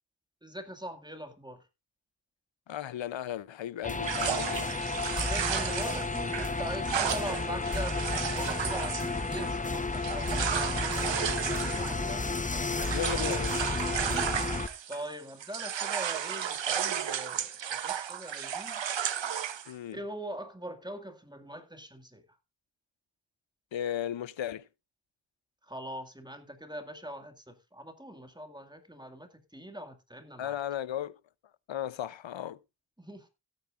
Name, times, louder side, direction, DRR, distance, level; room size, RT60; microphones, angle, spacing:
voice 1, 0.4-1.6 5.2-12.3 14.9-18.9 19.9-22.2 25.6-30.5 33.0-33.3, right 1 dB, 10° right, 2.0 m, -42 dB
voice 2, 2.7-4.7 12.9-13.6 19.7-20.0 23.7-24.7 30.4-31.2 31.7-32.6, left 10 dB, 80° left, 0.6 m, -35 dB
sound 1, 3.8-14.7, left 3 dB, 20° left, 0.6 m, -32 dB
sound 2, 4.0-15.1 15.4-19.7, right 9 dB, 75° right, 0.8 m, -34 dB
17.0 x 9.2 x 2.5 m
wide cardioid pair, 60°, 45 cm